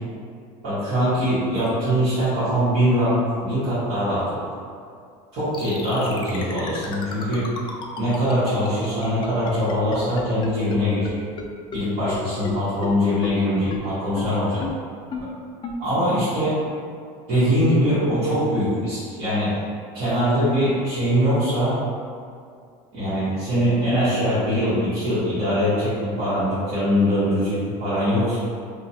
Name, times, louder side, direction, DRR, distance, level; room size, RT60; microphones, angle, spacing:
voice 1, 0.6-4.4 5.3-7.5 8.0-11.2 11.7-14.6 15.8-16.6 17.3-19.5 19.9-21.8 22.9-28.4, equal, 70° right, -16 dB, 1.4 m, -22 dB
sound 1, 5.5-10.8 11.0-11.1 11.4-11.5 11.7-11.8 12.1-12.2 12.4-12.5 12.8-12.9 13.2-13.3 13.7-13.8 14.2-14.3 14.6-14.7 15.1-15.2 15.6-15.7, left 5 dB, 30° left, 0.3 m, -32 dB
2.8 x 2.4 x 2.7 m, 2.2 s
supercardioid pair, 120°, 16 cm